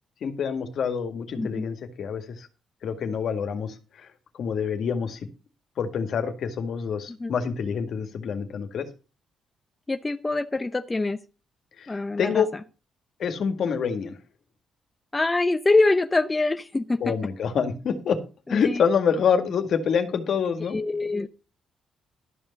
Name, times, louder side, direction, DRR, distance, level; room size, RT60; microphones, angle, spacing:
voice 1, 0.2-2.5 2.8-4.1 4.3-5.2 5.8-8.9 11.8-12.5 13.2-14.2 17.0-18.2 18.5-20.8, left 6 dB, 65° left, 7 dB, 2.0 m, -26 dB
voice 2, 9.9-11.2 11.9-12.4 15.1-17.1 18.5-18.8 20.7-21.3, left 2 dB, 20° left, 9 dB, 0.7 m, -24 dB
12.5 x 5.4 x 6.8 m, 0.33 s
cardioid pair, 90°, 0 cm